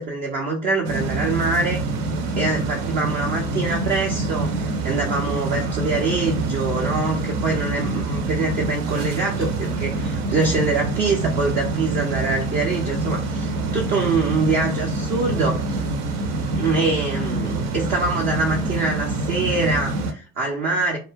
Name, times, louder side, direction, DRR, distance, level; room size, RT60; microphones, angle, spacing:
voice 1, 0.0-1.8 2.4-4.6 4.8-15.8 16.6-21.0, right 3 dB, 25° right, 0 dB, 0.3 m, -24 dB
sound 1, 0.8-20.1, right 3 dB, 75° right, 0.6 m, -26 dB
2.2 x 2.2 x 3.2 m, 0.37 s
figure-of-eight pair, 60°, 47 cm